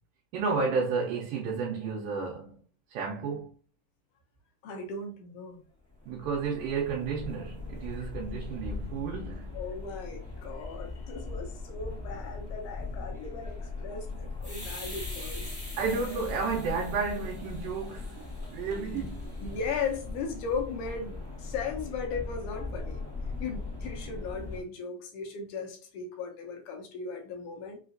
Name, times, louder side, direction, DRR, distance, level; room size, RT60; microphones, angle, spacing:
voice 1, 0.3-2.6 2.9-3.5 6.1-9.6 15.8-19.3, right 5 dB, 80° right, 2.3 m, -32 dB
voice 2, 4.6-5.6 9.5-15.7 18.8-19.1 19.4-23.0 23.4-27.8, left 5 dB, 75° left, 2.0 m, -37 dB
sound 1, 5.9-24.6, left 3 dB, 15° left, 0.7 m, -39 dB
5.6 x 2.4 x 2.5 m
omnidirectional pair, 4.0 m